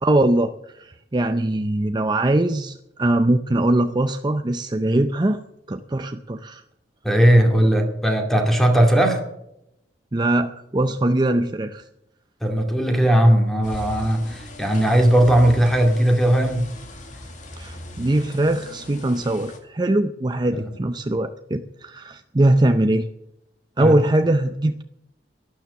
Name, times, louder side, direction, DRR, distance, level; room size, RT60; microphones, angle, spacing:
voice 1, 0.0-5.4 5.7-6.6 10.1-11.8 17.5-23.1 23.8-24.8, right 1 dB, 25° right, 8 dB, 0.6 m, -21 dB
voice 2, 7.0-9.2 12.4-16.7 20.5-20.7 23.8-24.0, right 1 dB, ahead, 3 dB, 2.3 m, -18 dB
sound 1, 13.6-19.6, left 1 dB, 45° left, 2.2 m, -39 dB
12.0 x 12.0 x 7.0 m, 0.81 s
head